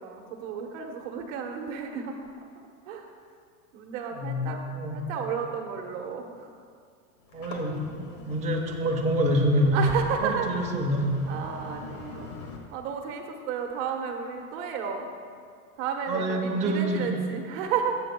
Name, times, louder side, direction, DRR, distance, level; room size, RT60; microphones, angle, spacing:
voice 1, 0.0-2.3 2.9-3.1 3.7-4.6 4.9-6.5 7.3-7.5 9.7-10.7 11.3-12.3 12.7-15.1 15.8-18.0, right 6 dB, 50° right, 3 dB, 1.2 m, -32 dB
voice 2, 4.1-5.0 7.3-7.8 8.3-9.8 10.2-11.1 16.1-17.1, right 1 dB, 15° right, -2 dB, 1.0 m, -26 dB
sound 1, 7.2-12.6, left 4 dB, 80° left, 2.0 m, -43 dB
17.5 x 8.3 x 2.3 m, 2.2 s
supercardioid pair, 130°, 45 cm